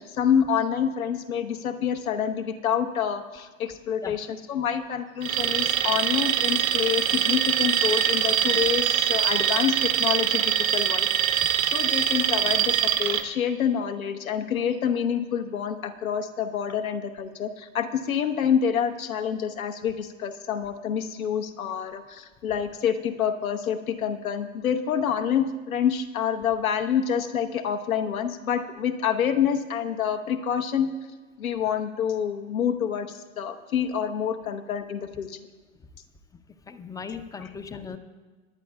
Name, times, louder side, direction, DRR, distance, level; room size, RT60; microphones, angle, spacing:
voice 1, 0.0-30.9 31.4-35.4 37.4-37.5, left 8 dB, 80° left, 7 dB, 1.1 m, -27 dB
Alarm, 5.2-13.2, right 10 dB, 80° right, 1.0 m, -23 dB
voice 2, 36.7-38.0, left 5 dB, 10° left, 10 dB, 0.4 m, -37 dB
20.5 x 11.0 x 2.3 m, 1.4 s
hypercardioid pair, 100°, 41 cm